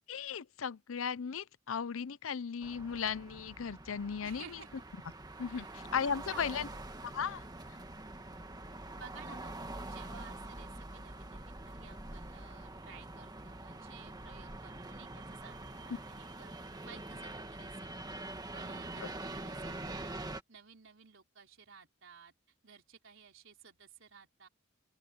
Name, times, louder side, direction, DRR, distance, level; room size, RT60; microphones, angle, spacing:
voice 1, 0.1-4.6 5.4-6.7 7.0-7.4 19.0-19.1, left 6 dB, 80° left, 0.6 m, -36 dB
sound 1, 2.6-20.4, right 2 dB, 20° right, 1.6 m, -45 dB
voice 2, 4.2-4.8 5.5-5.7 6.3-6.7 8.9-9.5 9.8-16.6 16.8-18.1 18.5-20.2 20.5-22.3 22.6-24.5, right 6 dB, 65° right, 4.6 m, -55 dB
open air
head